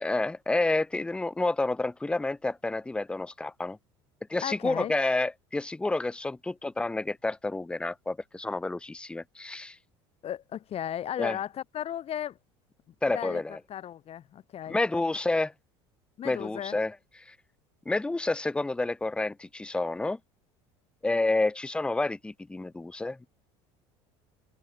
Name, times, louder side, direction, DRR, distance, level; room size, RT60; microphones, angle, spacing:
voice 1, 0.0-3.8 4.3-9.8 11.2-11.4 13.0-13.6 14.7-15.5 16.2-16.9 17.3-17.4 17.9-20.2 21.0-23.3, left 2 dB, 5° left, 0.4 m, -29 dB
voice 2, 4.4-4.9 10.2-12.4 13.1-13.4 13.7-14.8 16.2-16.8, left 10 dB, 45° left, 1.9 m, -35 dB
hypercardioid pair, 85°, 14 cm